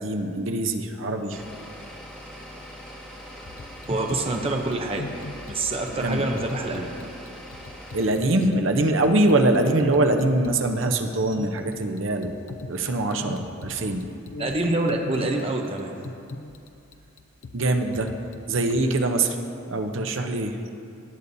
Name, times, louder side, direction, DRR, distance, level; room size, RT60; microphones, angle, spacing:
voice 1, 0.0-1.4 6.0-6.2 7.9-12.3 12.7-14.1 17.5-18.1 18.5-19.4 19.6-20.7, right 2 dB, 60° right, 5 dB, 0.7 m, -23 dB
sound 1, 1.3-8.0, equal, 5° left, 1.2 m, -42 dB
sound 2, 3.5-18.8, left 3 dB, 70° left, 0.5 m, -41 dB
voice 2, 3.9-5.1 5.5-6.9 14.4-15.9, right 2 dB, 25° right, 2 dB, 0.6 m, -26 dB
17.5 x 8.3 x 2.7 m, 2.6 s
head